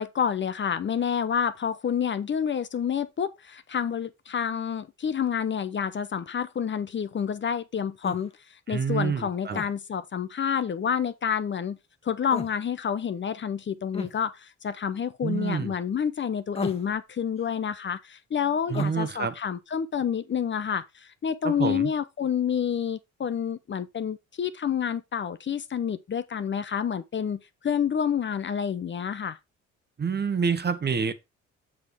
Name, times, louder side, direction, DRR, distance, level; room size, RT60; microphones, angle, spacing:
voice 1, 0.0-8.3 8.7-11.8 12.0-29.4, left 8 dB, 40° left, 0.7 m, -28 dB
sound 1, 8.0-8.3 9.5-9.7 12.3-12.5 13.9-14.1 16.5-16.9 18.7-19.0, left 3 dB, 20° left, 1.4 m, -33 dB
voice 2, 8.7-9.6 15.2-15.7 18.7-19.3 21.4-21.9 30.0-31.1, right 6 dB, 35° right, 1.0 m, -27 dB
7.3 x 6.3 x 3.5 m
cardioid pair, 90°, 30 cm